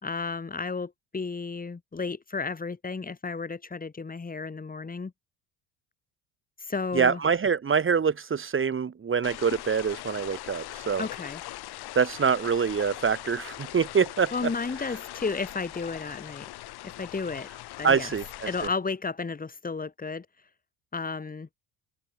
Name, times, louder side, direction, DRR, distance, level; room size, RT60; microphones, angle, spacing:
voice 1, 0.0-5.1 6.6-7.2 11.0-11.4 14.3-16.5 16.8-17.5 17.8-18.1 18.5-20.3 20.9-21.5, left 4 dB, 20° left, 3.7 m, -33 dB
voice 2, 6.9-11.1 12.0-14.3 17.8-18.7, right 6 dB, 30° right, 2.1 m, -25 dB
sound 1, 9.2-18.7, left 16 dB, 65° left, 3.3 m, -41 dB
supercardioid pair, 95°, 41 cm